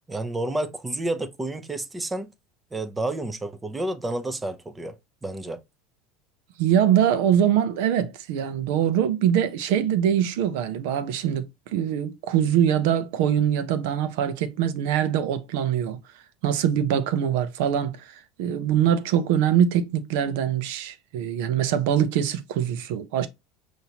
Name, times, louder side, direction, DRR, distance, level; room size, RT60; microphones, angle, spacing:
voice 1, 0.1-2.3 2.7-5.0 5.2-5.6, right 2 dB, 15° right, 0.6 m, -30 dB
voice 2, 6.6-16.0 16.4-18.0 18.4-23.3, right 9 dB, 75° right, 0.7 m, -23 dB
5.6 x 2.7 x 2.9 m
supercardioid pair, 125°, 0 cm